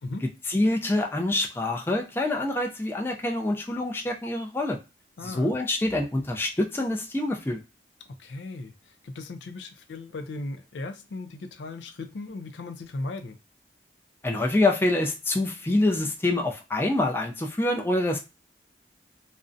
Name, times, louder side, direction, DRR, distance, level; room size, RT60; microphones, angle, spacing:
voice 1, 0.5-4.8 5.2-7.6 14.2-18.2, left 2 dB, 15° left, 0.3 m, -26 dB
voice 2, 5.2-5.5 8.2-13.4, left 2 dB, 85° left, 0.4 m, -37 dB
2.4 x 2.0 x 2.5 m
head